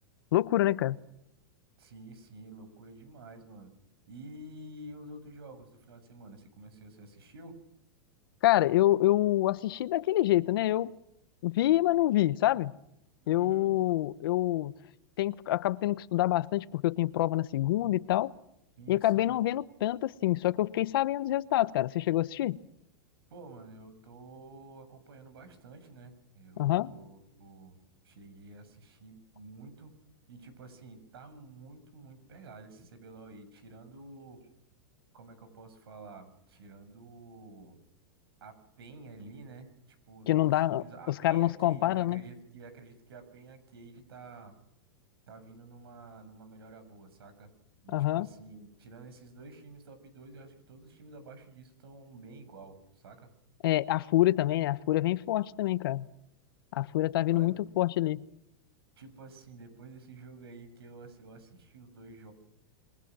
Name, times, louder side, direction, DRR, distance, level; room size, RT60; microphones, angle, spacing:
voice 1, 0.3-1.0 8.4-11.0 11.4-12.7 13.3-14.7 15.2-18.3 18.9-22.6 26.6-26.9 40.3-40.8 41.2-42.2 47.9-48.3 53.6-56.1 56.7-58.2, left 15 dB, 70° left, 1.0 m, -26 dB
voice 2, 1.8-3.7 4.1-7.6 13.2-13.7 18.8-19.3 23.3-27.8 28.0-29.9 30.3-34.4 35.1-37.8 38.4-39.7 40.1-44.5 45.3-47.5 47.8-53.3 57.3-57.6 59.0-62.3, right 2 dB, 85° right, 7.1 m, -50 dB
27.5 x 22.5 x 6.3 m
supercardioid pair, 145°, 12 cm